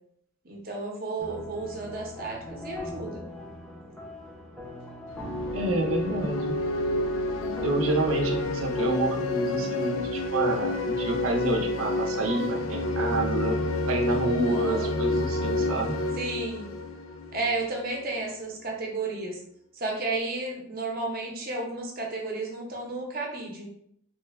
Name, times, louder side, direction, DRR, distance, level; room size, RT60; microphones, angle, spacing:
voice 1, 0.4-3.2 7.4-7.8 14.4-14.9 16.1-16.7 17.3-19.4 19.7-23.7, right 2 dB, 45° right, -1 dB, 0.7 m, -33 dB
sound 1, 1.2-13.2, equal, 5° left, 0.5 m, -42 dB
sound 2, 5.1-17.8, left 2 dB, 70° left, 0.4 m, -29 dB
voice 2, 5.5-6.6 7.6-13.6 13.9-16.0, right 2 dB, 80° right, 2 dB, 0.6 m, -28 dB
3.1 x 2.2 x 3.3 m, 0.70 s
head